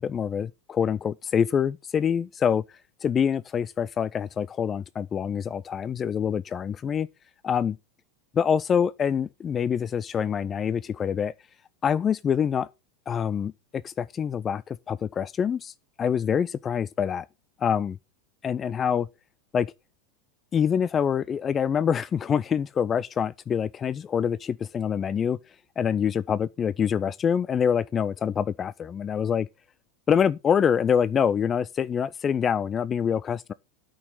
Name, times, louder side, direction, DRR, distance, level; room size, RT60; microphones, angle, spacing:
voice 1, 0.0-2.6 3.0-7.1 7.4-7.8 8.3-11.3 11.8-12.7 13.1-13.5 13.8-15.7 16.0-17.3 17.6-18.0 18.4-19.1 19.5-19.7 20.5-25.4 25.8-29.5 30.1-33.5, left 7 dB, 25° left, 0.5 m, -25 dB
13.0 x 6.5 x 5.3 m
figure-of-eight pair, 85°, 0 cm